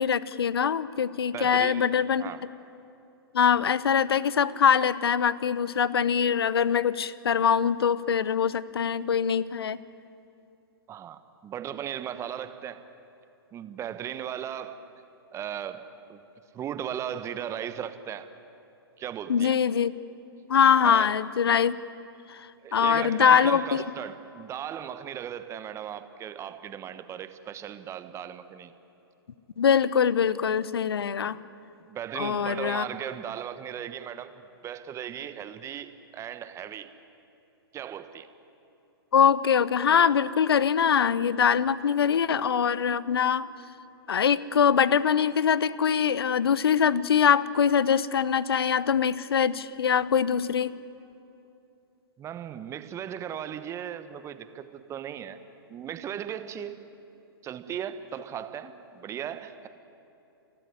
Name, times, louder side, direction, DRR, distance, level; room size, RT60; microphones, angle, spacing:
voice 1, 0.0-2.3 3.3-9.8 19.3-19.9 20.5-21.8 22.3-23.8 29.6-31.4 32.1-32.8 39.1-43.5 44.1-50.8, left 7 dB, 75° left, 18 dB, 0.8 m, -23 dB
voice 2, 1.3-1.9 2.2-2.4 10.9-12.8 13.5-14.8 15.3-16.2 16.5-18.3 19.0-19.6 20.8-21.1 22.6-28.7 31.7-36.9 37.7-38.3 52.2-55.4 55.7-56.8 57.4-59.7, right 9 dB, 20° right, 11 dB, 1.2 m, -37 dB
29.0 x 12.5 x 9.7 m, 2.8 s
hypercardioid pair, 115°, 13 cm